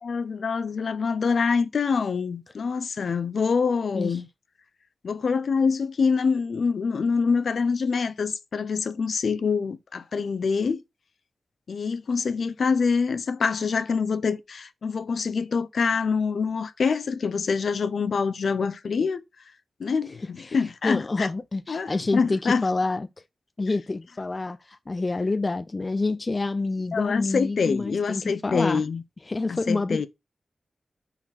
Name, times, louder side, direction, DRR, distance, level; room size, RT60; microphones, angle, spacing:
voice 1, 0.0-4.3 5.0-10.8 11.7-19.2 19.8-21.3 21.7-22.6 26.9-29.0 29.5-30.1, left 5 dB, 65° left, 0.6 m, -25 dB
voice 2, 20.8-23.1 23.6-28.8 29.3-30.1, left 3 dB, 25° left, 0.3 m, -27 dB
5.8 x 4.0 x 4.5 m
wide cardioid pair, 170°, 0 cm